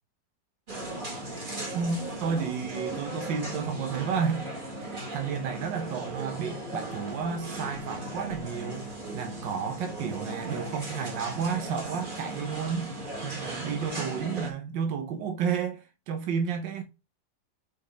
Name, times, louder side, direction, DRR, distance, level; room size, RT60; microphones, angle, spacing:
sound 1, 0.7-14.5, right 1 dB, 30° right, 1.8 m, -37 dB
voice 1, 1.7-4.5 4.8-12.9 13.2-16.8, right 6 dB, 85° right, 1.6 m, -32 dB
5.2 x 4.9 x 5.0 m
omnidirectional pair, 1.9 m